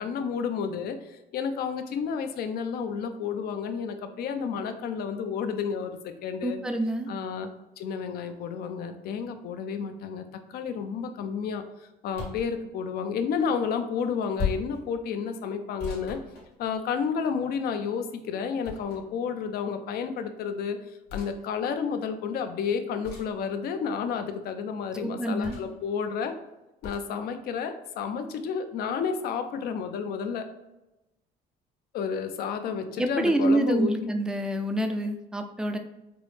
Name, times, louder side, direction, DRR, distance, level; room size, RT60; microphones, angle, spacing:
voice 1, 0.0-6.6 7.1-7.5 7.8-10.2 10.5-16.2 16.6-20.8 21.1-26.3 26.8-30.5 31.9-34.1, left 6 dB, 65° left, 8 dB, 0.5 m, -31 dB
voice 2, 6.4-7.1 25.0-25.6 33.0-35.8, right 1 dB, 5° right, 5 dB, 0.3 m, -27 dB
sound 1, 12.1-12.5 14.4-14.8 15.8-17.0 18.6-19.2 21.1-21.3 23.0-23.4 25.4-25.8 26.8-27.1, left 6 dB, 80° left, 1.1 m, -35 dB
4.6 x 2.0 x 3.2 m, 0.98 s
cardioid pair, 110°, 17 cm